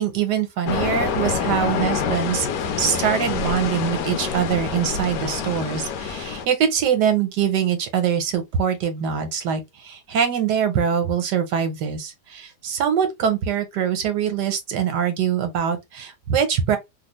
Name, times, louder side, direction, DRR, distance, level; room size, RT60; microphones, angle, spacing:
voice 1, 0.0-2.5 2.8-16.8, right 8 dB, 90° right, 1.4 m, -23 dB
sound 1, 0.6-6.5, left 6 dB, 85° left, 1.2 m, -26 dB
3.3 x 2.4 x 3.0 m
omnidirectional pair, 1.7 m